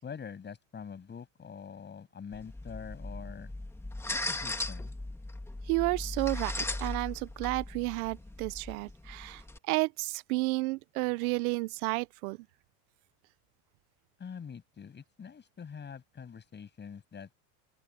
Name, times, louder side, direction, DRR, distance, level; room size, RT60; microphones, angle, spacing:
voice 1, 0.0-3.5 4.1-4.9 14.2-17.3, left 6 dB, 25° left, 7.4 m, -45 dB
sound 1, 2.3-9.6, left 2 dB, 5° left, 1.8 m, -38 dB
voice 2, 5.7-12.4, right 24 dB, 85° right, 0.7 m, -32 dB
open air
supercardioid pair, 135°, 42 cm